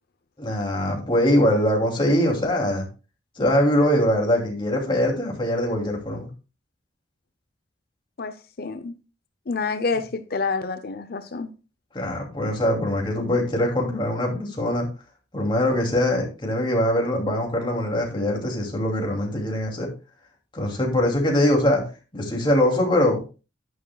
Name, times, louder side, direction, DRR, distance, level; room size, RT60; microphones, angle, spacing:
voice 1, 0.4-2.9 3.4-6.3 11.9-14.9 15.3-19.9 20.5-21.8 22.1-23.2, left 1 dB, 25° left, 2.7 m, -22 dB
voice 2, 8.2-8.9 9.5-11.5, left 4 dB, 55° left, 0.6 m, -28 dB
11.0 x 9.2 x 2.3 m
head